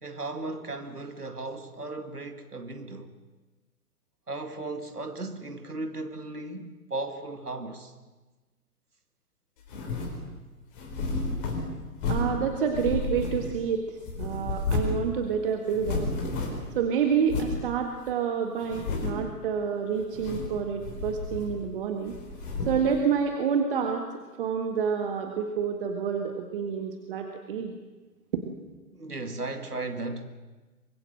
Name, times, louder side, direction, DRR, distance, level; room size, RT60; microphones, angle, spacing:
voice 1, 0.0-3.1 4.3-7.9 28.9-30.4, right 2 dB, 80° right, 2.3 m, -36 dB
sound 1, 9.7-10.2 10.7-12.4 12.7-13.7 14.0-15.1 15.3-15.4 15.7-16.7 17.3-17.6 18.1-18.2 18.6-19.3 20.0-20.6 20.8-21.7 22.1-22.9, left 3 dB, 35° left, 4.5 m, -31 dB
voice 2, 12.1-16.1 16.8-22.2 22.7-27.7 28.3-28.4, right 7 dB, 35° right, 1.8 m, -28 dB
24.0 x 21.5 x 7.7 m
figure-of-eight pair, 125°, 45 cm